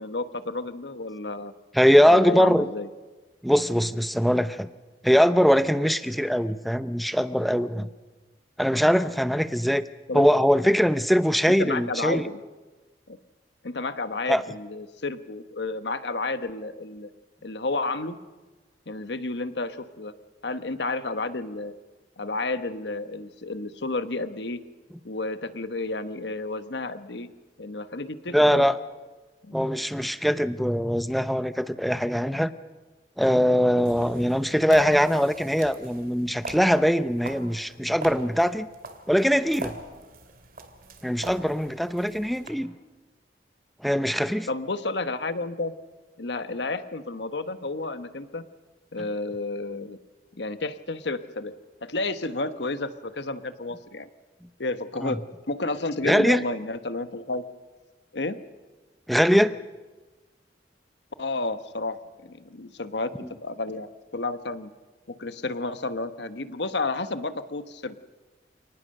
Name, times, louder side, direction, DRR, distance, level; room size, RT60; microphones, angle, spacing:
voice 1, 0.0-1.5 2.1-2.9 10.1-10.3 11.5-12.4 13.1-13.2 13.6-17.1 17.4-18.2 18.9-20.1 20.4-21.7 22.2-24.6 25.0-27.3 27.6-28.6 29.4-29.7 44.5-45.7 46.2-48.4 48.9-50.0 50.3-51.5 51.8-54.1 54.6-55.2 55.5-57.4 58.1-58.4 61.2-64.7 65.2-67.9, left 2 dB, 75° left, 11 dB, 1.2 m, -31 dB
voice 2, 1.7-2.7 3.4-4.7 5.0-7.9 8.6-9.8 10.1-12.3 14.3-14.4 28.3-28.8 29.5-32.5 33.2-38.7 39.1-39.8 41.0-42.7 43.8-44.5 55.0-55.2 56.0-56.4 59.1-59.6, equal, ahead, 12 dB, 0.7 m, -22 dB
sound 1, 33.8-42.5, right 2 dB, 55° right, 2.5 m, -42 dB
29.0 x 19.0 x 6.6 m, 1.2 s
head